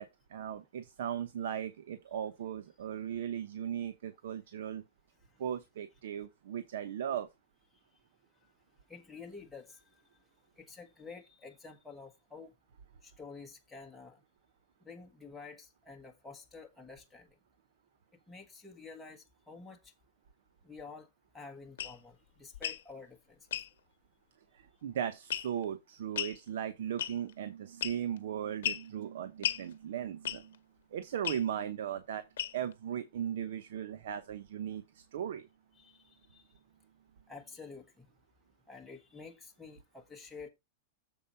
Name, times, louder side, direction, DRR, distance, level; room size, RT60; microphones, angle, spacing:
voice 1, 0.0-4.8 5.4-7.3 24.8-30.6 30.9-32.2 32.5-35.5, right 9 dB, 70° right, 0.8 m, -37 dB
voice 2, 8.9-9.8 10.6-12.5 13.0-14.2 14.8-17.3 18.3-19.9 20.6-21.1 21.3-23.4 35.8-36.4 37.3-38.1 38.7-40.5, left 4 dB, 5° left, 1.3 m, -50 dB
sound 1, 21.8-22.0 22.5-22.8 23.5-23.7 25.3-25.6 26.2-26.4 27.0-27.3 27.8-28.2 28.6-28.9 29.4-29.6 30.3-30.6 31.2-31.4 32.4-32.7, left 10 dB, 80° left, 0.8 m, -35 dB
7.3 x 4.5 x 5.4 m
supercardioid pair, 170°, 0 cm